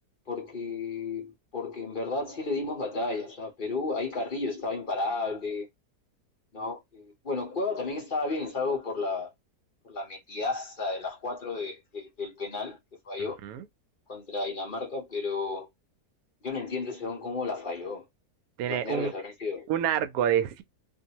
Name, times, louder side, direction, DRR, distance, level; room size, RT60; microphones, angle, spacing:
voice 1, 0.3-5.7 6.5-9.3 9.8-12.8 13.0-13.4 14.1-15.7 16.4-18.0 18.7-19.7, left 3 dB, 40° left, 1.0 m, -32 dB
voice 2, 18.6-19.1 19.7-20.6, right 10 dB, 75° right, 1.0 m, -27 dB
2.7 x 2.5 x 2.8 m
omnidirectional pair, 1.7 m